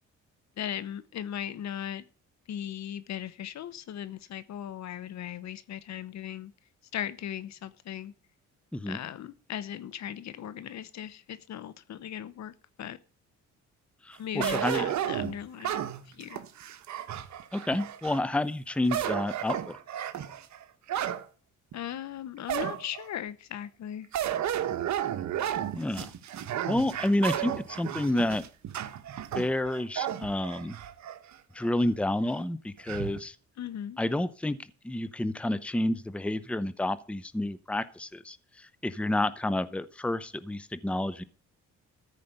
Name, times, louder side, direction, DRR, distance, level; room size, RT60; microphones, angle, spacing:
voice 1, 0.6-2.1 2.5-6.5 6.9-8.1 8.9-13.0 14.2-15.8 16.1-16.4 21.7-24.1 33.6-34.0, left 10 dB, 65° left, 1.0 m, -38 dB
voice 2, 14.0-14.9 17.5-19.8 25.7-26.1 26.7-28.4 29.3-30.8 31.5-33.4 34.0-41.2, left 1 dB, 5° left, 0.7 m, -30 dB
sound 1, 14.4-18.2 18.7-21.2 21.7-21.8 22.5-23.1 24.1-31.2 31.6-31.7 32.9-33.2, right 10 dB, 65° right, 1.2 m, -33 dB
14.0 x 5.1 x 8.0 m
cardioid pair, 90°, 30 cm